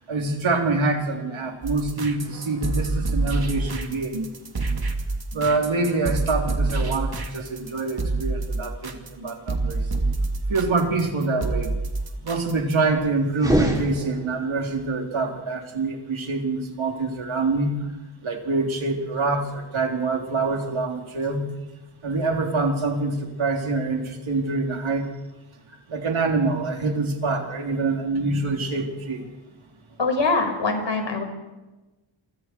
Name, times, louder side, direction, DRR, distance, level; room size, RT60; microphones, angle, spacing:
voice 1, 0.1-4.3 5.3-9.8 10.5-11.7 12.2-17.7 18.2-21.5 22.0-25.1 25.9-29.2, right 3 dB, 85° right, 2 dB, 3.7 m, -25 dB
sound 1, 1.6-12.9, right 3 dB, 50° right, 2.8 m, -27 dB
sound 2, 13.3-14.6, right 1 dB, 10° right, 6.5 m, -24 dB
voice 2, 30.0-31.2, left 3 dB, 65° left, 4 dB, 5.4 m, -23 dB
29.0 x 24.0 x 4.7 m, 1.1 s
wide cardioid pair, 75°, 47 cm